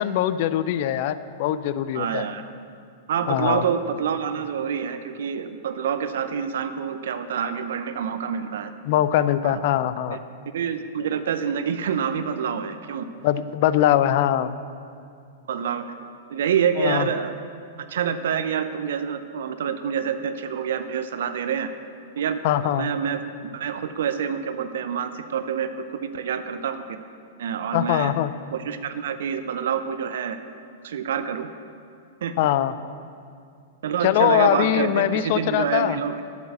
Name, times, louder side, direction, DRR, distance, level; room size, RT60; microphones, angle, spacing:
voice 1, 0.0-2.2 3.3-3.6 8.9-10.2 13.2-14.5 16.8-17.1 22.4-22.9 27.7-28.3 32.4-32.7 34.0-36.0, left 12 dB, 55° left, 14 dB, 0.4 m, -22 dB
voice 2, 1.9-2.4 3.1-8.7 9.4-9.6 10.1-10.2 10.5-13.1 15.5-15.9 16.3-17.3 17.9-21.7 22.2-27.0 27.4-28.1 28.5-30.4 30.8-31.5 32.2-32.3 33.8-36.2, right 7 dB, 70° right, 10 dB, 0.6 m, -27 dB
8.0 x 7.2 x 7.9 m, 2.4 s
hypercardioid pair, 105°, 0 cm